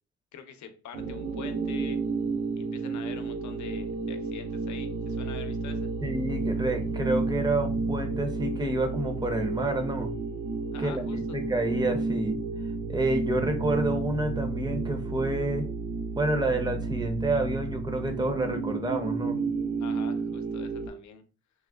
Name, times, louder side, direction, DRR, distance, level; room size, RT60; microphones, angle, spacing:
voice 1, 0.3-2.0 2.6-5.9 10.7-11.2 19.8-21.2, left 7 dB, 70° left, 7 dB, 0.6 m, -44 dB
sound 1, 0.9-20.9, right 4 dB, 80° right, 0.6 m, -31 dB
voice 2, 6.0-10.1 10.8-12.4 12.9-15.7 16.2-19.4, right 2 dB, 15° right, 5 dB, 0.6 m, -29 dB
3.5 x 2.1 x 2.3 m, 0.36 s
cardioid pair, 90°, 30 cm